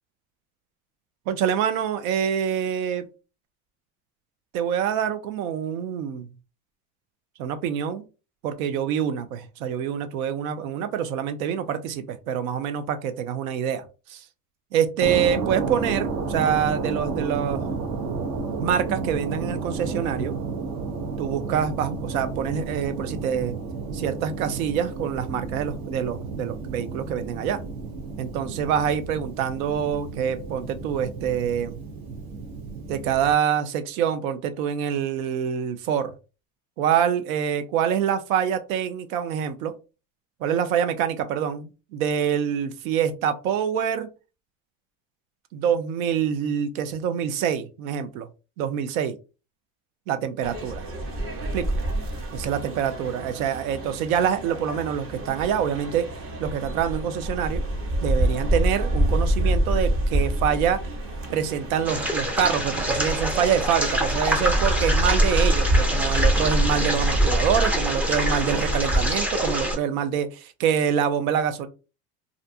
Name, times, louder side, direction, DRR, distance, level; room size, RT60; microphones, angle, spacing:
voice 1, 1.3-3.1 4.5-6.2 7.4-8.0 8.4-13.8 14.1-14.2 14.7-17.7 18.6-20.4 21.2-23.5 23.9-27.6 28.2-31.8 32.9-36.1 36.8-39.7 40.4-44.1 45.5-48.3 48.6-49.2 50.1-50.9 51.5-51.8 52.3-56.1 56.4-57.6 58.0-60.8 61.3-71.7, right 8 dB, 90° right, 0.6 m, -26 dB
sound 1, 15.0-33.3, right 4 dB, 60° right, 0.8 m, -32 dB
sound 2, 50.4-69.1, right 1 dB, 35° right, 0.8 m, -27 dB
sound 3, 61.8-69.8, equal, 5° right, 0.3 m, -25 dB
2.5 x 2.2 x 2.7 m
supercardioid pair, 105°, 41 cm